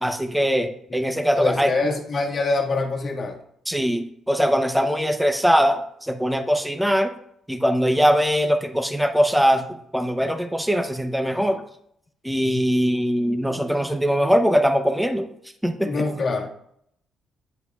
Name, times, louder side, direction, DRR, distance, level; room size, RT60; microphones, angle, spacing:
voice 1, 0.0-1.7 3.7-7.1 7.5-11.6 12.2-15.3 15.6-15.9, equal, 5° right, 7 dB, 0.6 m, -21 dB
voice 2, 0.9-3.4 15.8-16.5, left 3 dB, 50° left, 1 dB, 1.4 m, -25 dB
9.5 x 5.4 x 2.3 m, 0.70 s
cardioid pair, 90°, 0 cm